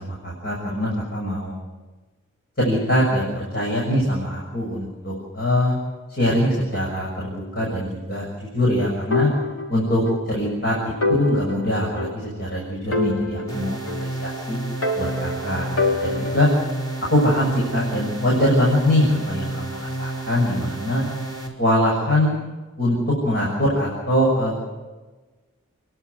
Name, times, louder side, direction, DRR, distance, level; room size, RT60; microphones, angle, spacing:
voice 1, 0.0-1.5 2.6-5.8 6.2-8.2 8.5-9.3 9.7-10.0 10.3-14.6 14.9-15.7 16.0-16.5 17.1-21.0 21.6-22.4 22.8-23.0 23.2-24.6, left 1 dB, 50° left, -4 dB, 6.8 m, -22 dB
sound 1, 9.1-10.3 10.6-10.7 11.0-12.5 12.9-14.4 14.8-16.7, left 2 dB, 90° left, 4.3 m, -26 dB
sound 2, 13.5-21.5, right 1 dB, 20° left, 4.5 m, -31 dB
29.5 x 12.0 x 9.7 m, 1.2 s
head